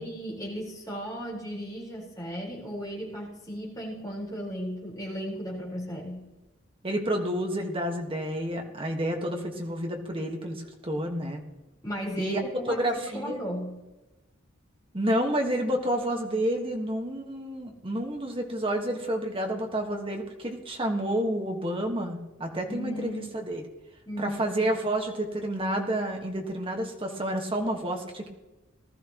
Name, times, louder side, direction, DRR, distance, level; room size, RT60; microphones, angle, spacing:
voice 1, 0.0-6.3 11.8-13.8 22.7-23.4 24.1-24.4, equal, 20° left, -5 dB, 4.3 m, -35 dB
voice 2, 6.8-11.4 12.2-13.4 14.9-23.6 24.2-28.3, right 1 dB, 25° right, 2 dB, 1.5 m, -29 dB
19.0 x 13.0 x 3.0 m, 1.1 s
head